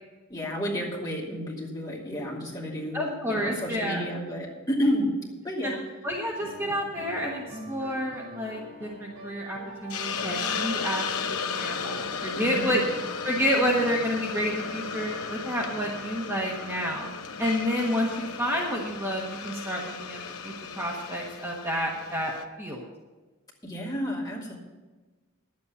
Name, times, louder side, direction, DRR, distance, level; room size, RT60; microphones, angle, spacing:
voice 1, 0.3-5.1 5.4-5.8 12.3-12.8 23.6-24.6, equal, 15° left, -4 dB, 2.8 m, -31 dB
voice 2, 2.9-4.1 5.6-5.7 6.0-12.8 13.2-17.1 17.4-22.9, equal, 10° right, -3 dB, 1.3 m, -29 dB
sound 1, 6.3-17.6, right 1 dB, 75° right, 5.0 m, -45 dB
Hiss, 9.9-22.4, left 5 dB, 75° left, 0.9 m, -35 dB
11.0 x 8.5 x 6.9 m, 1.2 s
head